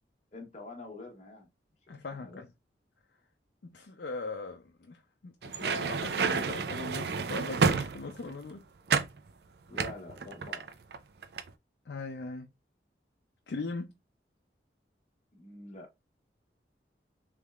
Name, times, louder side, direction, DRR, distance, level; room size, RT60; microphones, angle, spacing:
voice 1, 0.3-1.5 1.9-2.4 9.7-10.7 15.3-15.9, left 2 dB, 40° left, 0.9 m, -46 dB
voice 2, 1.9-2.5 3.6-8.7 11.9-12.5 13.5-13.9, left 3 dB, 65° left, 0.5 m, -40 dB
sound 1, 5.4-8.4 8.9-9.2 9.8-11.0 11.2-11.5, right 5 dB, 65° right, 0.4 m, -29 dB
3.4 x 3.2 x 2.3 m
head